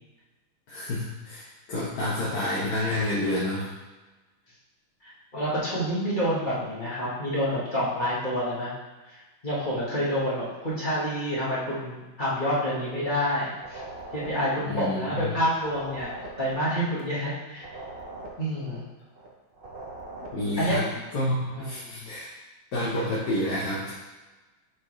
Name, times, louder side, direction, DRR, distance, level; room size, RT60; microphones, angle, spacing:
voice 1, 0.7-3.7 14.6-15.3 20.3-20.9 21.1-22.3 22.7-23.9, left 1 dB, 55° left, -7 dB, 1.3 m, -29 dB
voice 2, 5.0-8.7 9.1-13.8 14.1-17.7 18.4-18.8 20.6-20.8 21.5-22.1, equal, 25° left, -9 dB, 1.5 m, -28 dB
sound 1, 13.5-15.3 15.5-19.3 19.5-20.9, right 2 dB, 50° right, 0.6 m, -42 dB
7.2 x 4.1 x 3.2 m, 1.2 s
omnidirectional pair, 2.2 m